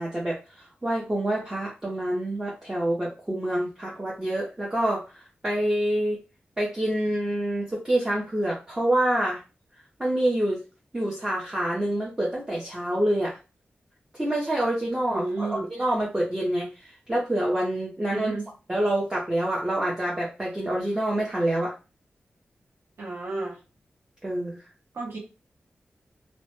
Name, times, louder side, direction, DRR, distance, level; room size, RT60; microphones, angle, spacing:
voice 1, 0.0-5.0 5.4-6.2 6.6-9.4 10.0-10.6 10.9-13.4 14.2-18.3 18.7-21.7 24.2-24.6, right 1 dB, 15° right, -4 dB, 0.5 m, -27 dB
voice 2, 15.1-15.7 18.1-18.5 23.0-23.6 24.9-25.2, right 3 dB, 75° right, -1 dB, 0.7 m, -31 dB
2.1 x 2.0 x 2.9 m, 0.30 s
wide cardioid pair, 165°, 4 cm